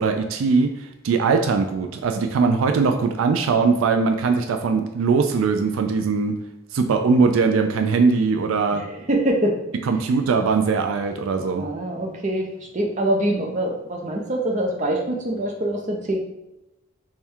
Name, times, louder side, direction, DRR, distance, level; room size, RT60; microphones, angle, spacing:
voice 1, 0.0-6.3 6.7-8.8 9.9-11.7, right 4 dB, 80° right, 5 dB, 0.3 m, -20 dB
voice 2, 8.7-9.6 11.6-12.5 12.7-16.2, right 1 dB, 35° right, 0 dB, 0.6 m, -24 dB
3.4 x 2.2 x 4.3 m, 0.92 s
head